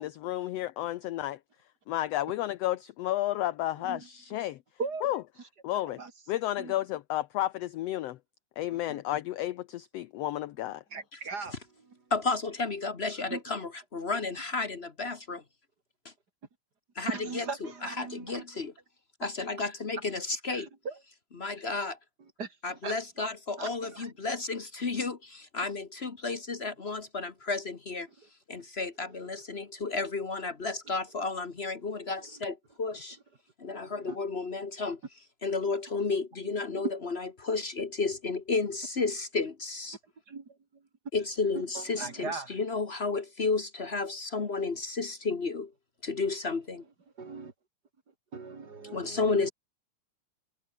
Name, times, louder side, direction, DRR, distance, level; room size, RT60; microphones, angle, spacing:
voice 1, 0.0-1.4 1.9-4.6 5.0-5.2 5.6-6.0 6.3-8.2 8.6-10.8, left 14 dB, 70° left, 1.6 m, -32 dB
voice 2, 4.8-5.1 5.7-6.1 6.6-6.7 8.7-9.0 10.9-11.5 13.3-13.4 17.1-18.4 20.5-21.0 22.4-23.3 23.6-24.1 34.0-34.2 36.7-36.9 40.3-40.4 41.7-42.5 47.2-47.5 48.3-49.5, right 4 dB, 35° right, 2.9 m, -39 dB
voice 3, 12.1-15.4 16.9-18.7 19.2-20.7 21.4-22.0 22.6-28.1 28.5-33.2 33.6-35.0 35.4-40.0 41.1-45.7 46.0-46.8 48.9-49.5, left 4 dB, 50° left, 0.7 m, -32 dB
omnidirectional pair, 3.5 m